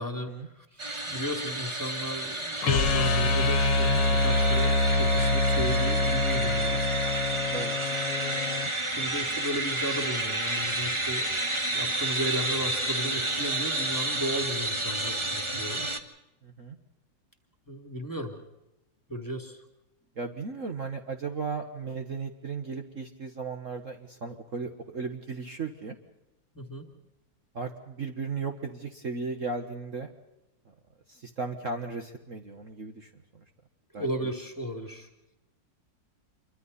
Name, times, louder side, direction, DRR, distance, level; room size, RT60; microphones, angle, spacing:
voice 1, 0.0-6.9 8.0-8.6 8.9-11.4 11.7-16.0 17.7-18.3 19.1-19.6 26.5-26.9 33.9-35.1, equal, 10° left, 3 dB, 2.5 m, -35 dB
sound 1, 0.8-16.0, right 2 dB, 15° right, 1.3 m, -31 dB
sound 2, 2.6-8.7, left 2 dB, 75° left, 1.8 m, -25 dB
voice 2, 15.5-15.9 16.4-16.8 20.1-26.0 27.5-30.1 30.6-30.7 31.1-33.4 33.9-34.1, right 4 dB, 45° right, 4 dB, 1.7 m, -36 dB
27.5 x 24.5 x 4.1 m, 0.97 s
omnidirectional pair, 2.0 m